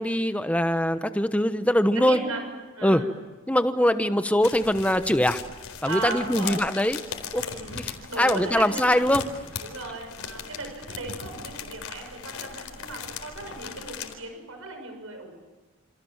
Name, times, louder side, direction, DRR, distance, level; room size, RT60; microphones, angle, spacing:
voice 1, 0.0-2.2 2.8-3.0 3.5-5.4 5.8-7.0 7.3-7.4 7.7-9.2, equal, 5° left, 9 dB, 1.1 m, -22 dB
voice 2, 1.9-2.5 2.7-3.1 3.7-4.0 5.8-6.6 7.4-7.8 8.1-9.1 9.6-15.3, right 3 dB, 85° right, 5 dB, 6.5 m, -36 dB
sound 1, 4.4-14.1, left 6 dB, 80° left, 4.1 m, -38 dB
28.5 x 28.0 x 7.4 m, 1.3 s
head